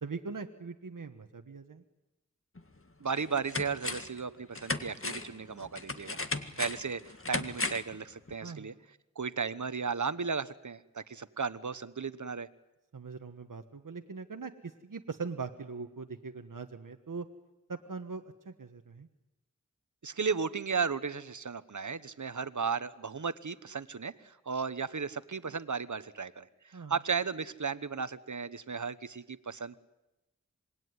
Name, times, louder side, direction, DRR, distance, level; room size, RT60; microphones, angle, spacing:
voice 1, 0.0-1.8 8.4-8.7 12.9-17.3 17.7-19.1 26.7-26.9, right 4 dB, 85° right, 6 dB, 1.4 m, -41 dB
sound 1, 2.6-2.7 3.1-4.2 4.5-8.0 8.3-8.4, left 2 dB, 40° left, 2.0 m, -36 dB
voice 2, 3.0-6.2 6.6-8.7 9.2-12.5 20.0-29.8, right 5 dB, 65° right, 14 dB, 1.2 m, -35 dB
26.5 x 21.0 x 9.7 m, 0.99 s
wide cardioid pair, 40°, 32 cm